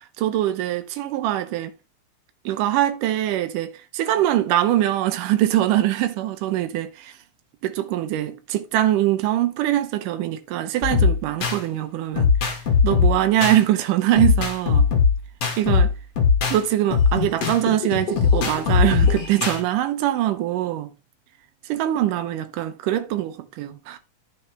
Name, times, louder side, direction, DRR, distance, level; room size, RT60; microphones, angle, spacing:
voice 1, 0.2-1.7 2.5-7.1 7.6-12.3 12.8-14.9 15.6-15.9 16.5-20.9 21.7-24.0, right 13 dB, 85° right, 2.4 m, -23 dB
sound 1, 10.8-11.6 12.2-13.6 14.2-16.6 16.9-19.6, left 5 dB, 55° left, 3.0 m, -20 dB
11.0 x 6.3 x 3.3 m
omnidirectional pair, 3.6 m